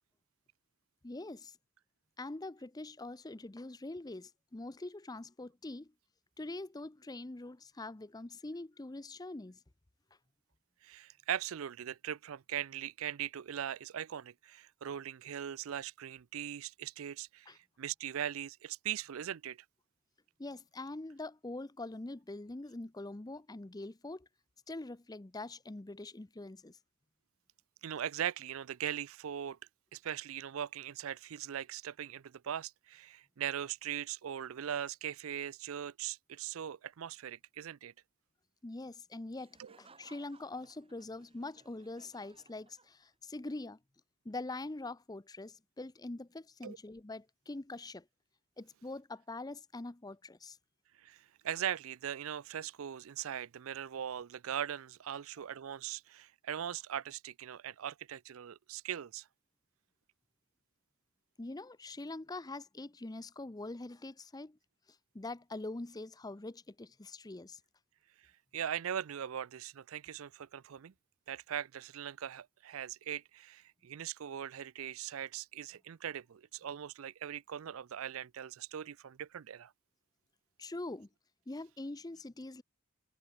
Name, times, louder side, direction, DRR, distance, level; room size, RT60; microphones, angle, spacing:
voice 1, 1.0-1.6 2.2-5.9 6.4-9.6 17.5-17.6 20.4-24.3 24.7-26.8 38.6-43.8 44.2-48.1 48.6-50.6 61.4-64.6 65.1-67.6 80.6-81.1 81.5-82.6, left 2 dB, 15° left, 0.6 m, -44 dB
voice 2, 10.8-17.5 17.8-19.6 27.8-29.6 29.9-37.9 39.6-39.7 46.6-46.8 51.0-59.3 68.5-70.9 71.3-79.7, right 9 dB, 70° right, 0.4 m, -40 dB
Laughter, 39.3-43.3, right 4 dB, 25° right, 5.1 m, -63 dB
head